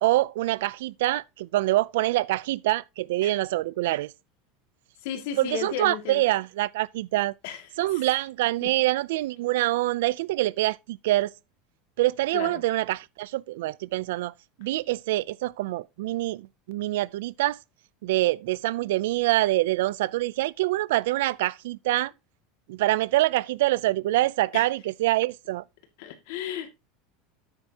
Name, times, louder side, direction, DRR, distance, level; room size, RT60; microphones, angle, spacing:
voice 1, 0.0-4.1 5.4-7.3 7.8-11.3 12.0-14.3 14.6-17.6 18.0-22.1 22.7-25.6, right 17 dB, 80° right, 0.4 m, -25 dB
voice 2, 5.0-6.2 7.4-7.6 7.9-8.0 8.6-8.7 12.3-12.6 24.5-24.7 26.0-26.7, left 9 dB, 65° left, 2.3 m, -34 dB
9.1 x 8.8 x 2.9 m
supercardioid pair, 155°, 0 cm